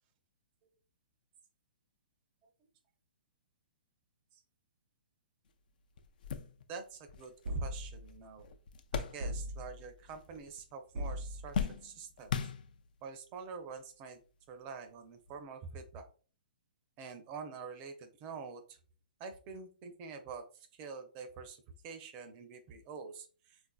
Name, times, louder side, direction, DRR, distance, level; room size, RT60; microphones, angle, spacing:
sound 1, 5.5-5.6 6.0-9.8 10.0-10.7 11.0-13.1 13.9-14.0 15.3-15.4, left 6 dB, 65° left, 0.4 m, -40 dB
voice 1, 6.7-8.4 8.9-11.5 11.8-12.3 13.0-14.2 14.5-16.0 17.0-17.9 18.2-18.6 19.2-20.4 20.8-21.6 21.8-23.3, right 5 dB, 30° right, 6 dB, 0.5 m, -46 dB
sound 2, 7.4-8.2 9.2-10.0 10.9-11.7, equal, 80° right, 0.5 m, -39 dB
3.7 x 2.5 x 2.3 m, 0.39 s
hypercardioid pair, 140°, 5 cm